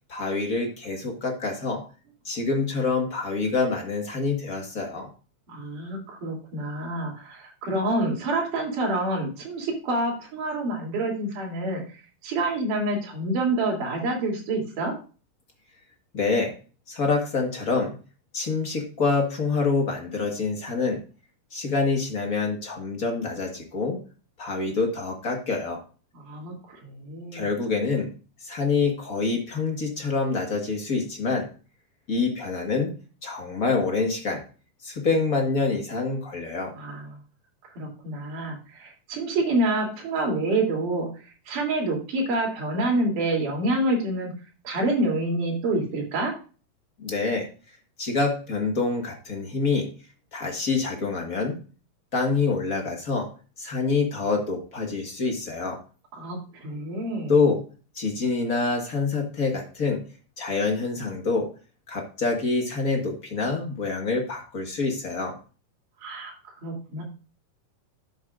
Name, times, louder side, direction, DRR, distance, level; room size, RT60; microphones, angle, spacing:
voice 1, 0.1-1.8 2.2-5.1 16.1-16.5 16.9-17.9 18.3-21.0 21.5-24.0 24.4-25.8 27.3-28.1 28.4-31.5 32.1-32.9 33.2-34.4 34.8-36.7 47.0-47.5 48.0-49.8 50.3-51.6 52.1-53.3 53.6-55.8 57.3-57.6 57.9-60.0 60.4-61.5 61.9-65.4, left 4 dB, 40° left, 2 dB, 1.3 m, -26 dB
voice 2, 5.5-11.8 12.2-14.9 26.1-27.5 36.8-37.2 37.8-44.3 44.6-46.3 56.1-57.3 66.0-67.0, right 2 dB, 70° right, -1 dB, 4.6 m, -27 dB
12.0 x 7.7 x 2.5 m, 0.35 s
omnidirectional pair, 3.8 m